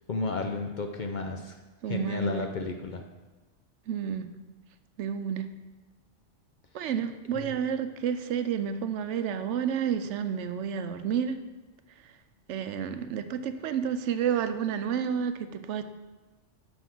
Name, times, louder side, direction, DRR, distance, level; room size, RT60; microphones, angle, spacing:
voice 1, 0.1-1.6 1.9-3.0 7.3-7.6, left 3 dB, 55° left, 4 dB, 0.6 m, -32 dB
voice 2, 1.8-2.5 3.9-4.3 5.0-5.5 6.7-11.4 12.5-15.8, right 8 dB, 80° right, 10 dB, 0.9 m, -30 dB
6.2 x 5.7 x 6.0 m, 1.2 s
omnidirectional pair, 1.2 m